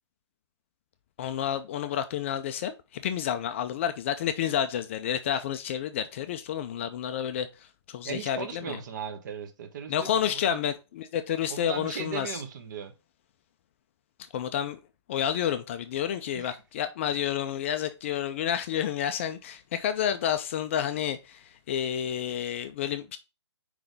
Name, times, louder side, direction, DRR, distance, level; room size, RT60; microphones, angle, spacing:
voice 1, 1.2-7.5 7.9-8.8 9.9-12.4 14.3-14.8 15.1-23.2, left 9 dB, 25° left, 0.4 m, -30 dB
voice 2, 8.0-10.6 11.5-12.9 16.3-16.6, right 7 dB, 40° right, 1.2 m, -38 dB
4.9 x 3.8 x 5.2 m
figure-of-eight pair, 140°, 15 cm